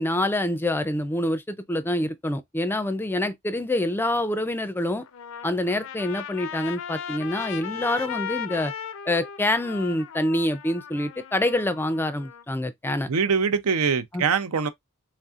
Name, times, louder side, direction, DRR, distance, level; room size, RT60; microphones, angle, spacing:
voice 1, 0.0-5.1 5.4-8.7 9.1-13.1 14.1-14.2, left 1 dB, 10° left, 0.4 m, -26 dB
Trumpet, 5.0-12.4, left 8 dB, 65° left, 0.5 m, -37 dB
voice 2, 13.1-14.7, right 5 dB, 90° right, 0.6 m, -23 dB
4.0 x 3.4 x 2.4 m
head